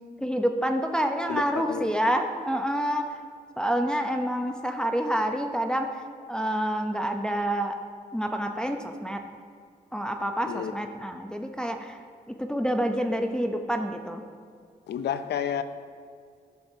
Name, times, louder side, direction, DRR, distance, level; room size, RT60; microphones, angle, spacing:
voice 1, 0.2-3.2 3.6-6.0 6.3-7.8 8.1-9.2 9.9-12.0 12.3-14.2, equal, 5° left, 4 dB, 0.6 m, -28 dB
voice 2, 1.3-1.9 10.5-10.7 14.9-15.6, left 8 dB, 85° left, 11 dB, 0.4 m, -30 dB
10.0 x 6.6 x 2.7 m, 2.1 s
cardioid pair, 50°, 17 cm